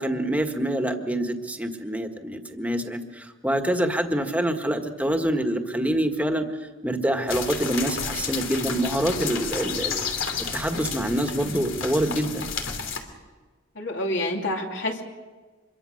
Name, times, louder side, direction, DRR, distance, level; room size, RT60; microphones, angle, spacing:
voice 1, 0.0-6.5 6.8-10.0 10.5-12.5, right 1 dB, 10° right, 5 dB, 1.7 m, -26 dB
sound 1, 7.3-13.0, left 6 dB, 80° left, 2.9 m, -31 dB
voice 2, 13.7-15.0, left 1 dB, 65° left, 1 dB, 2.9 m, -28 dB
25.5 x 22.5 x 6.6 m, 1.4 s
head